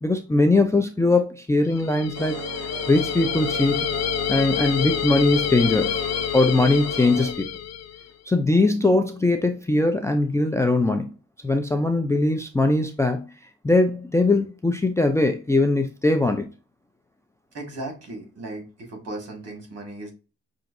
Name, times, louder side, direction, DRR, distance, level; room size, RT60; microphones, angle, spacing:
voice 1, 0.0-3.9 4.3-6.0 6.3-7.5 8.3-11.1 11.4-13.2 13.6-16.5, left 2 dB, 10° left, 0.4 m, -21 dB
sound 1, 1.7-8.1, left 10 dB, 60° left, 0.6 m, -28 dB
sound 2, 2.1-7.3, right 6 dB, 80° right, 0.7 m, -36 dB
voice 2, 17.5-20.1, right 2 dB, 55° right, 1.9 m, -36 dB
5.8 x 2.5 x 2.6 m
cardioid pair, 90°, 30 cm